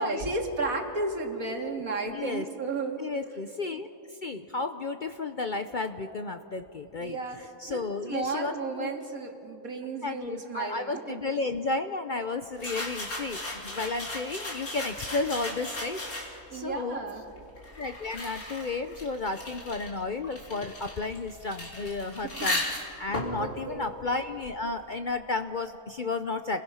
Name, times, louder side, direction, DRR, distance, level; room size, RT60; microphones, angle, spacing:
voice 1, 0.0-3.0 7.0-11.2 16.5-17.2 22.2-22.3 23.4-23.9, right 3 dB, 75° right, 3 dB, 2.5 m, -33 dB
voice 2, 2.1-2.4 3.0-3.9 4.2-7.2 7.6-8.5 8.8-8.9 10.0-17.0 17.8-22.6 23.0-26.6, left 3 dB, 45° left, 8 dB, 0.7 m, -33 dB
sound 1, 12.6-16.6 17.3-24.8, left 1 dB, 80° left, 3.6 m, -36 dB
30.0 x 21.5 x 5.7 m, 2.8 s
omnidirectional pair, 1.5 m